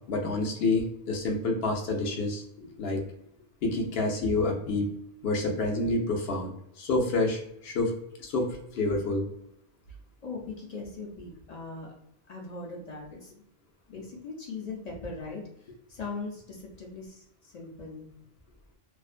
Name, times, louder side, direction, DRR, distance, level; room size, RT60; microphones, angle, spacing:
voice 1, 0.1-2.4 2.8-3.0 3.6-4.9 5.2-6.5 6.8-7.9 8.2-9.2, left 2 dB, 75° left, 1 dB, 0.9 m, -28 dB
voice 2, 10.2-11.9 12.3-13.4 13.9-18.1, left 3 dB, 50° left, -1 dB, 0.5 m, -40 dB
2.4 x 2.1 x 2.4 m, 0.74 s
omnidirectional pair, 1.1 m